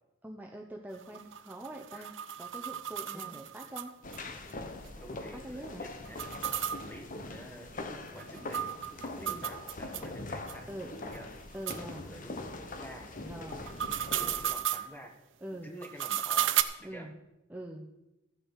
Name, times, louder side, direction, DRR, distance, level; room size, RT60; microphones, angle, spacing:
voice 1, 0.2-2.1 2.4-3.9 5.1-5.8 9.2-9.4 10.7-10.9 11.5-12.1 13.2-13.7 15.4-15.7 16.8-17.1 17.5-17.9, right 1 dB, 10° right, 0 dB, 0.8 m, -44 dB
sound 1, 0.9-4.2 4.5-4.6 4.9-5.0 6.1-10.1 10.5-10.6 11.1-11.2 11.7-11.8 13.5-14.9 15.8-16.6, right 10 dB, 70° right, 0.7 m, -34 dB
sound 2, 4.0-14.5, left 2 dB, 40° left, 1.0 m, -42 dB
voice 2, 5.0-6.3 6.8-11.3 11.8-15.1 15.5-17.1, right 1 dB, 10° left, 3 dB, 1.5 m, -50 dB
14.0 x 9.6 x 4.9 m, 0.98 s
head